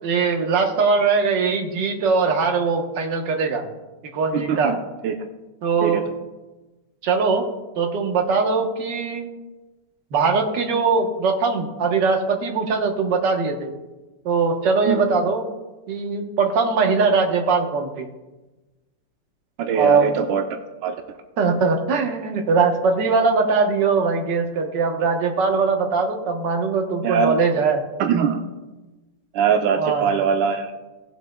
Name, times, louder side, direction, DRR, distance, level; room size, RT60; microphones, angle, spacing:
voice 1, 0.0-3.6 4.1-4.7 5.6-6.0 7.0-7.5 7.8-9.3 10.1-13.7 14.2-15.4 15.9-18.1 19.7-20.1 21.4-27.8 29.8-30.1, right 4 dB, 75° right, 3 dB, 1.7 m, -21 dB
voice 2, 4.3-4.8 5.0-5.1 5.8-6.0 14.8-15.0 19.6-20.4 20.8-21.0 27.0-27.3 28.0-28.4 29.3-30.7, right 7 dB, 90° right, 4 dB, 1.4 m, -21 dB
17.5 x 7.7 x 2.2 m, 1.1 s
omnidirectional pair, 2.0 m